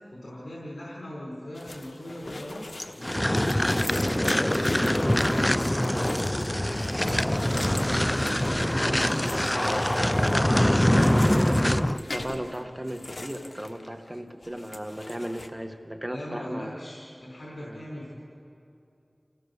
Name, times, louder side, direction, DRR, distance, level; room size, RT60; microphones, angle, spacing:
voice 1, 0.0-8.3 8.8-9.2 16.1-18.2, left 1 dB, 85° left, -5 dB, 4.7 m, -40 dB
sound 1, 1.5-14.2 14.4-15.5, left 2 dB, 65° left, 1.4 m, -41 dB
sound 2, 3.0-12.0, left 1 dB, 15° left, 0.4 m, -24 dB
voice 2, 10.8-16.8 17.6-17.8, equal, 15° right, 6 dB, 1.5 m, -36 dB
29.5 x 16.0 x 6.8 m, 2.6 s
wide cardioid pair, 40°, 0 cm